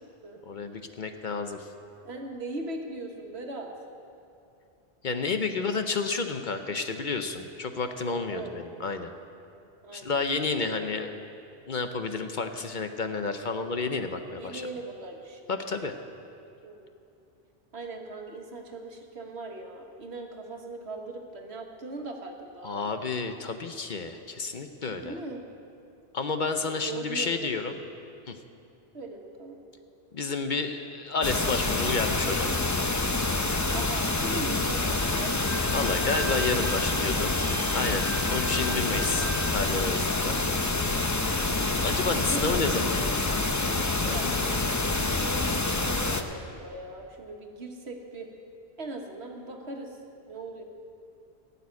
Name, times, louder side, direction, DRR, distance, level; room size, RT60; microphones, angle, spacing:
voice 1, 0.5-1.6 5.0-9.1 9.9-11.2 11.7-14.6 15.5-16.0 22.6-25.2 26.1-27.7 28.3-28.4 30.1-32.6 35.7-37.4 37.7-39.2 39.5-40.4 41.8-43.3 43.8-44.5 44.8-45.3, left 4 dB, 50° left, 7 dB, 0.8 m, -31 dB
voice 2, 2.0-3.7 7.9-8.6 9.8-11.0 14.4-16.0 16.6-16.9 17.7-23.2 25.0-25.4 26.5-27.7 28.9-29.6 33.7-35.3 38.7-39.3 42.2-43.5 44.1-44.3 45.2-48.3 48.8-50.0 50.3-50.6, right 2 dB, 70° right, 2 dB, 1.6 m, -40 dB
sound 1, 31.2-46.2, left 2 dB, 20° left, 0.5 m, -27 dB
Wind instrument woodwind instrument, 35.0-39.7, right 2 dB, 50° right, 1.5 m, -40 dB
16.5 x 6.9 x 9.5 m, 2.6 s
omnidirectional pair, 1.1 m